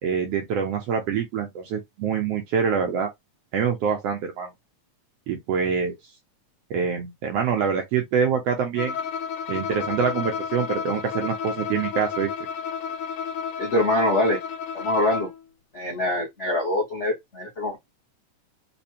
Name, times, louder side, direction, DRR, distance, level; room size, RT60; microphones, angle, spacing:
voice 1, 0.0-3.1 3.5-4.5 5.3-6.0 6.7-8.9 9.5-12.3, right 6 dB, 75° right, 1.5 m, -25 dB
Bowed string instrument, 8.8-15.4, left 7 dB, 65° left, 2.0 m, -31 dB
voice 2, 13.6-14.4 14.7-15.3 15.7-17.8, left 1 dB, 85° left, 0.6 m, -24 dB
5.1 x 2.2 x 2.8 m
omnidirectional pair, 3.6 m